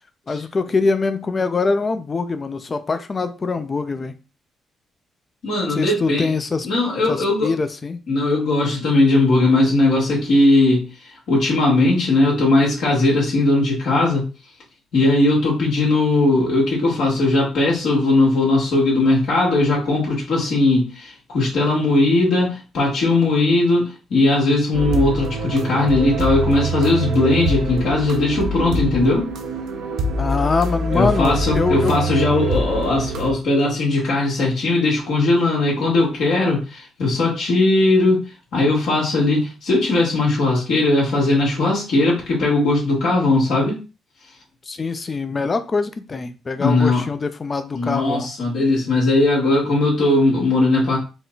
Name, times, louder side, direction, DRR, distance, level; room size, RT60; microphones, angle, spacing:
voice 1, 0.3-4.1 5.8-6.7 7.1-8.0 30.2-31.9 44.7-48.3, left 4 dB, 35° left, 10 dB, 0.5 m, -23 dB
voice 2, 5.4-6.3 6.6-7.5 8.1-14.3 14.9-29.3 30.9-38.2 38.5-43.8 46.6-47.1 47.7-51.0, left 2 dB, 75° left, -5 dB, 1.9 m, -18 dB
sound 1, 24.7-33.3, right 2 dB, 85° right, 0.7 m, -25 dB
4.0 x 2.3 x 3.9 m, 0.31 s
cardioid pair, 90°, 0 cm